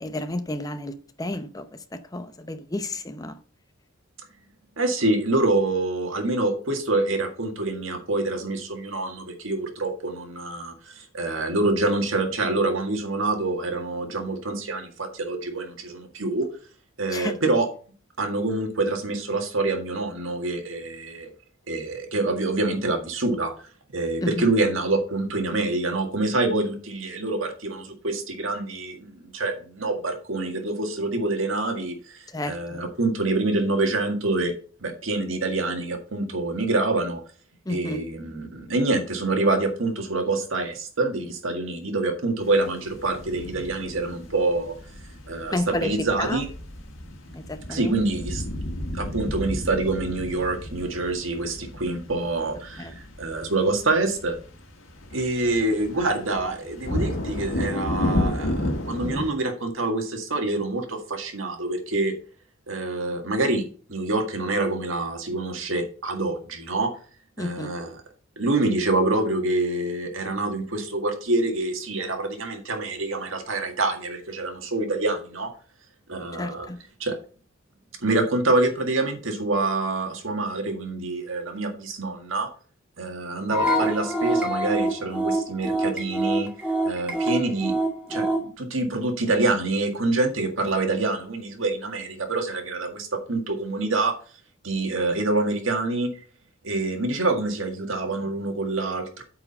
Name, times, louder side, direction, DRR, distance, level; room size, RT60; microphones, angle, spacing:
voice 1, 0.0-3.4 17.1-17.3 24.2-24.5 32.3-32.8 37.7-38.0 45.5-46.5 47.3-47.9 52.8-53.0 67.4-67.7 76.3-76.8 88.1-88.2, left 1 dB, 20° left, 0.7 m, -31 dB
voice 2, 4.8-16.5 17.0-17.7 18.2-21.3 21.7-23.5 23.9-34.5 34.8-37.2 37.7-44.7 45.3-46.5 47.7-48.4 48.9-54.4 55.1-62.1 62.7-63.6 63.9-66.9 67.4-67.9 68.4-75.5 76.1-76.7 77.0-77.2 78.0-82.5 83.0-86.5 86.8-87.7 88.1-94.1 94.6-96.1 96.6-99.2, right 2 dB, 75° right, 1.8 m, -26 dB
sound 1, 42.4-59.3, left 1 dB, 90° left, 2.0 m, -32 dB
sound 2, 83.5-88.5, right 1 dB, 5° right, 2.2 m, -25 dB
8.6 x 4.8 x 5.4 m
head